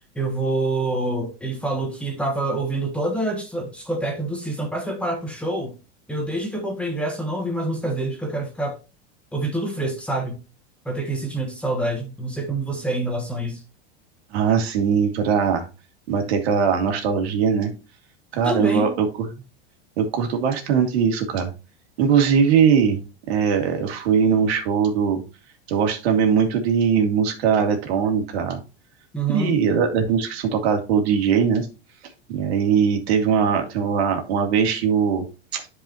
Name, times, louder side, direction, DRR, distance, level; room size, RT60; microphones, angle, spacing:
voice 1, 0.1-5.7 6.1-8.8 9.3-10.4 10.8-13.6 18.4-18.9 29.1-29.5, right 2 dB, 5° left, 1.4 m, -26 dB
voice 2, 14.3-15.7 16.1-17.7 18.3-19.3 20.0-21.5 22.0-23.0 23.3-25.2 25.7-28.6 29.3-31.7 32.3-35.3 35.5-35.7, right 7 dB, 75° right, 2.3 m, -20 dB
11.0 x 4.9 x 3.0 m
supercardioid pair, 145°, 32 cm